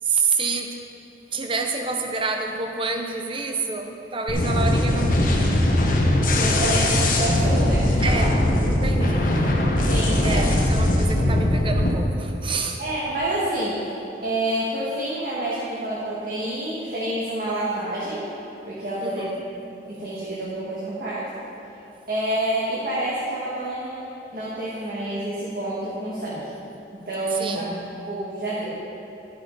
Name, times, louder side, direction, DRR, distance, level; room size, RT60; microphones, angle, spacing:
voice 1, 0.0-0.8 1.3-5.3 8.0-8.4 8.6-9.3 10.2-12.8 19.0-19.4 27.4-27.9, right 4 dB, 30° right, 4 dB, 0.6 m, -28 dB
sound 1, 4.3-11.9, left 1 dB, 45° left, 1.0 m, -20 dB
voice 2, 6.3-8.0 9.1-9.2 9.9-10.5 12.8-13.9 14.2-18.3 18.7-19.2 19.6-21.3 22.1-26.5 26.9-27.7 28.1-28.8, right 1 dB, 50° right, -9 dB, 1.6 m, -28 dB
11.5 x 6.5 x 5.2 m, 3.0 s
head